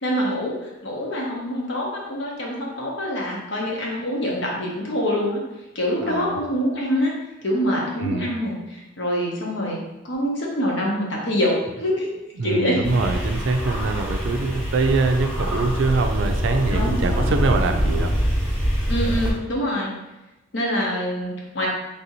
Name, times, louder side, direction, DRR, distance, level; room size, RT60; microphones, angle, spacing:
voice 1, 0.0-0.5 0.8-5.4 5.7-7.1 7.4-9.8 10.0-12.1 12.4-12.8 14.1-14.2 16.7-17.0 18.9-19.9 20.5-21.7, equal, 75° left, -3 dB, 0.9 m, -25 dB
voice 2, 6.0-6.4 7.9-8.3 12.4-18.1, right 3 dB, 80° right, 6 dB, 0.4 m, -23 dB
sound 1, 12.8-19.3, equal, 5° left, 0.8 m, -24 dB
3.4 x 2.6 x 2.8 m, 1.0 s
head